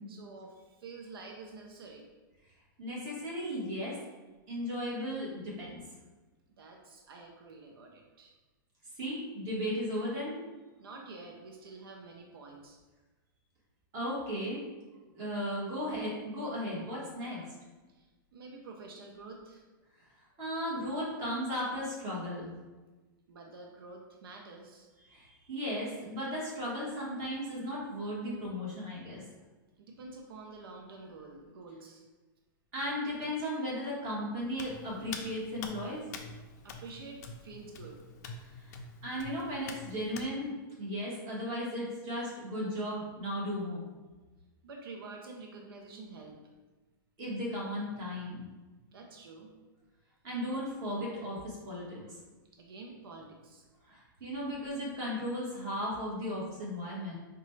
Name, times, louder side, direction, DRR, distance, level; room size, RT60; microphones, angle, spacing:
voice 1, 0.1-2.1 6.5-8.3 10.8-12.8 17.9-19.6 23.3-24.9 29.8-32.0 36.6-38.0 44.6-46.4 48.9-49.5 52.6-53.6, right 3 dB, 90° right, 1 dB, 0.6 m, -48 dB
voice 2, 2.8-3.9 4.5-5.8 9.0-10.4 13.9-14.6 15.1-17.4 20.4-22.5 25.0-29.2 32.7-36.0 38.6-43.8 47.2-48.4 50.2-52.0 53.8-57.2, equal, 30° right, -6 dB, 1.4 m, -36 dB
Hands, 34.5-40.3, left 4 dB, 50° left, 0.4 m, -46 dB
4.8 x 2.3 x 3.1 m, 1.2 s
supercardioid pair, 160°, 12 cm